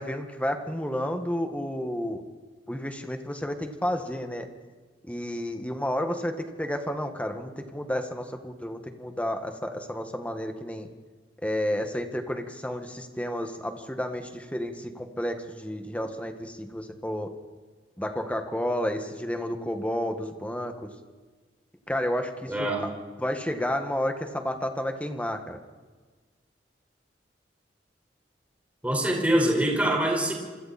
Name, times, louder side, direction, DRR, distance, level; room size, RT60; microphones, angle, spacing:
voice 1, 0.0-2.2 2.7-4.5 5.0-10.9 11.4-17.3 18.0-20.9 21.9-22.9 23.2-25.6, equal, 10° left, 5 dB, 1.8 m, -31 dB
voice 2, 22.5-22.8 28.8-30.3, right 1 dB, 10° right, -1 dB, 5.1 m, -24 dB
28.0 x 25.5 x 4.4 m, 1.4 s
head